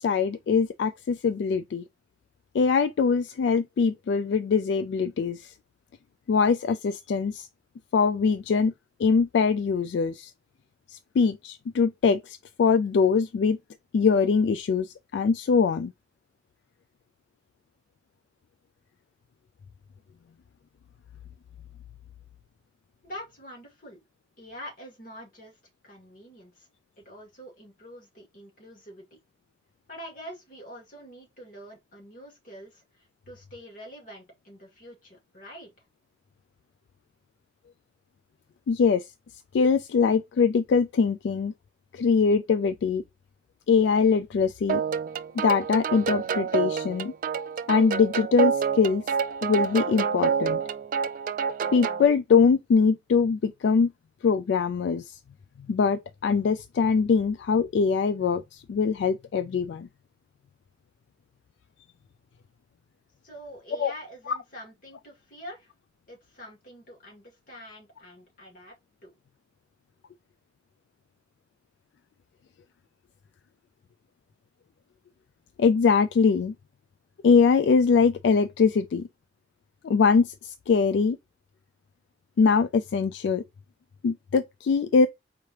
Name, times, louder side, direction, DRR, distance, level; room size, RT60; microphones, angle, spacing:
voice 1, 0.0-1.8 2.5-5.5 6.3-7.5 7.9-8.7 9.0-10.3 10.9-13.6 13.9-15.9 38.7-39.1 39.5-41.5 41.9-43.0 43.7-44.8 45.3-47.1 47.7-49.0 49.4-50.6 51.7-53.9 54.2-55.2 55.7-59.9 63.8-63.9 64.3-64.4 75.6-76.5 77.2-79.1 79.8-81.2 82.4-83.4 84.0-85.1, left 5 dB, 75° left, 0.3 m, -23 dB
voice 2, 23.0-24.0 24.4-25.6 25.8-26.7 27.0-29.1 29.9-35.7 63.2-65.7 66.1-68.7 69.0-69.1, equal, 45° left, 2.1 m, -45 dB
sound 1, 44.7-52.1, right 6 dB, 45° right, 0.3 m, -28 dB
4.6 x 3.2 x 2.8 m
head